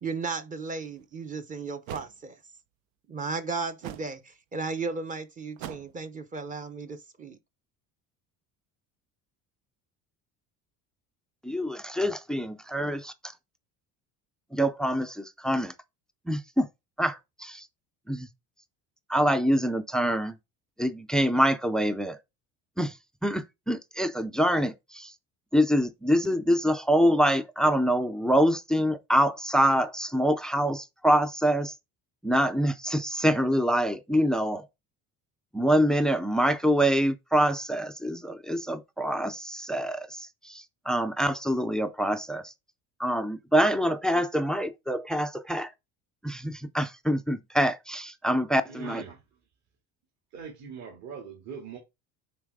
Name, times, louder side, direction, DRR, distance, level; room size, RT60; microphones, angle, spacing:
voice 1, 0.0-2.4 3.1-7.4, right 4 dB, 25° right, 0.7 m, -35 dB
sound 1, 1.0-1.1 1.9-2.1 3.8-4.1 5.6-6.0, right 11 dB, 80° right, 0.8 m, -40 dB
voice 2, 11.4-13.3 14.5-15.7 16.3-16.7 17.0-17.7 18.1-18.3 19.1-20.4 20.8-22.2 22.8-23.0 23.2-25.1 25.5-31.7 32.2-34.7 35.5-42.5 43.0-45.7 46.2-49.0, equal, ahead, 0.3 m, -25 dB
voice 3, 48.6-49.2 50.3-51.8, right 6 dB, 50° right, 2.4 m, -41 dB
9.6 x 4.0 x 3.5 m
cardioid pair, 155°, 34 cm